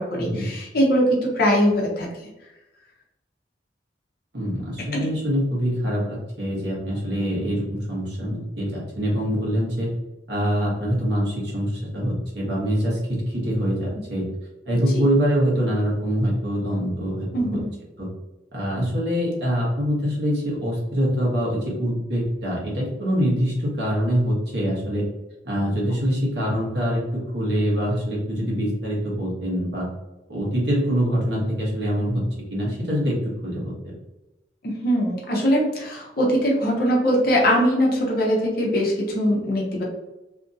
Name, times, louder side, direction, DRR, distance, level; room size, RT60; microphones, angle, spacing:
voice 1, 0.0-2.1 4.9-5.1 14.9-15.0 17.3-17.7 34.6-39.8, equal, 50° left, -2 dB, 0.7 m, -21 dB
voice 2, 4.3-9.9 10.3-14.2 14.7-17.6 18.0-18.1 18.5-25.0 25.4-27.0 27.3-29.9 30.3-32.2 32.5-33.2 33.4-33.7, equal, 65° right, -4 dB, 1.1 m, -24 dB
2.8 x 2.5 x 2.6 m, 1.0 s
head